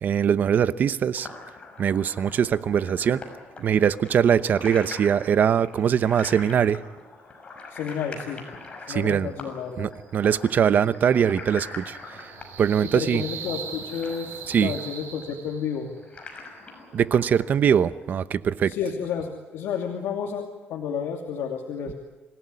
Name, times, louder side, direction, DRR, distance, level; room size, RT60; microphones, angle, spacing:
voice 1, 0.0-1.3 1.8-3.2 3.6-6.8 8.9-9.3 9.8-12.0 12.6-13.2 14.5-14.7 16.9-18.7, right 8 dB, 45° right, 14 dB, 0.9 m, -22 dB
sound 1, 1.1-18.0, left 3 dB, 30° left, 6.0 m, -43 dB
voice 2, 7.7-8.5 8.9-9.9 12.8-15.9 18.7-21.9, left 7 dB, 80° left, 1 dB, 2.7 m, -31 dB
sound 2, 9.9-15.9, right 7 dB, 75° right, 4.7 m, -41 dB
27.0 x 17.5 x 9.8 m, 1.2 s
cardioid pair, 140°, 4 cm